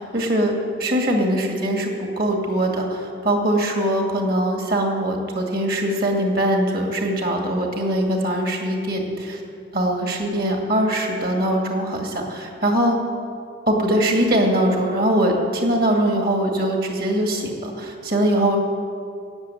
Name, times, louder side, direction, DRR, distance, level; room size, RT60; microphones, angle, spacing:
voice 1, 0.0-9.4 9.7-13.0 13.7-18.6, right 1 dB, 50° right, 2 dB, 2.2 m, -22 dB
14.0 x 8.5 x 9.1 m, 2.4 s
head